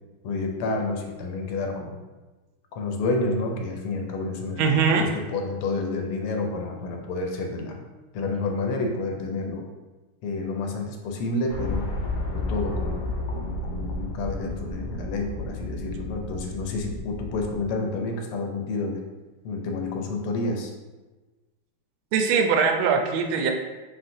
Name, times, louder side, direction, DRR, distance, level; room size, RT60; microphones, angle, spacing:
voice 1, 0.2-2.0 2.7-7.8 8.1-9.6 10.2-11.9 12.3-19.0 19.4-20.7, left 3 dB, 80° left, 2 dB, 1.5 m, -29 dB
voice 2, 4.6-5.1 22.1-23.5, right 5 dB, 75° right, 4 dB, 1.4 m, -21 dB
sound 1, 11.5-17.7, left 2 dB, 65° left, 1.1 m, -32 dB
4.4 x 3.9 x 2.6 m, 1.2 s
omnidirectional pair, 2.4 m